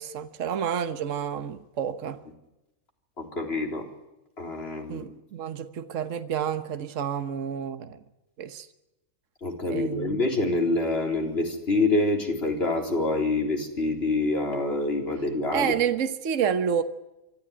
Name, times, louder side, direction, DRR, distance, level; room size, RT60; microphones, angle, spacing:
voice 1, 0.0-2.2 4.9-8.0 8.4-8.7 9.7-10.2 15.5-16.8, right 8 dB, 65° right, 1.4 m, -29 dB
voice 2, 3.2-3.9 4.4-5.0 9.4-15.7, left 2 dB, 45° left, 4.1 m, -26 dB
25.0 x 14.0 x 9.9 m
omnidirectional pair, 1.5 m